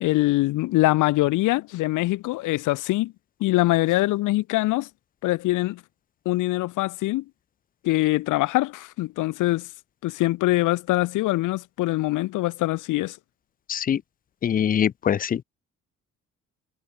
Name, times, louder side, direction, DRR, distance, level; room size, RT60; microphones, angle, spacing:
voice 1, 0.0-3.1 3.4-4.9 5.2-5.8 6.3-7.2 7.8-9.7 10.0-13.2, left 18 dB, 90° left, 0.8 m, -23 dB
voice 2, 13.7-14.0 14.4-15.4, left 9 dB, 30° left, 0.4 m, -23 dB
cardioid pair, 90°, 30 cm